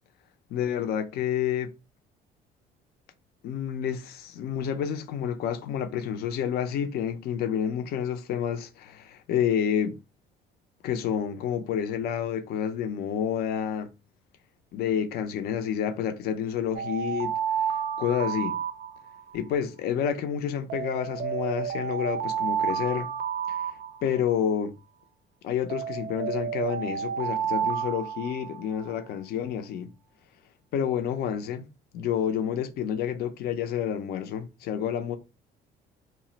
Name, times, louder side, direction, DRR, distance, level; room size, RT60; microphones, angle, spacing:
voice 1, 0.5-1.7 3.4-10.0 10.8-13.9 14.7-17.3 18.0-18.6 19.3-23.1 23.5-23.7 24.0-24.7 25.4-29.9 30.7-31.7 31.9-35.2, left 8 dB, 70° left, 0.5 m, -29 dB
Alarm, 16.7-19.4 20.7-24.4 25.7-28.9, right 8 dB, 60° right, 0.4 m, -31 dB
2.3 x 2.0 x 3.8 m
cardioid pair, 110°, 17 cm